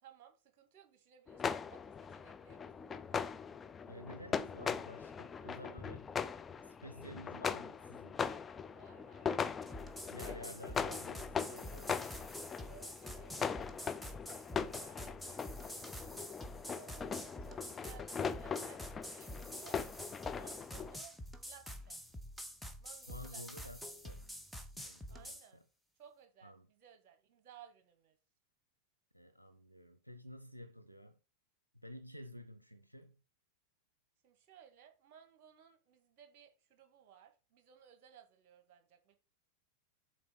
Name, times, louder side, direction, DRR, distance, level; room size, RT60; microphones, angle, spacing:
voice 1, 0.0-3.3 7.1-7.2 8.7-11.0 12.6-13.6 14.0-15.8 16.7-19.8 20.3-21.1 21.4-22.0 22.8-23.7 25.1-25.6 26.0-28.2 34.2-39.2, right 9 dB, 45° right, 2.0 m, -60 dB
sound 1, 1.3-21.0, left 6 dB, 20° left, 0.5 m, -40 dB
voice 2, 3.9-6.1 6.6-8.2 10.1-11.9 23.1-24.3 24.7-25.6 26.4-26.7 29.1-31.2 31.8-33.2, equal, 90° right, 0.6 m, -52 dB
sound 2, 9.6-25.5, equal, ahead, 1.0 m, -48 dB
7.7 x 4.3 x 6.3 m
figure-of-eight pair, 90°, 0 cm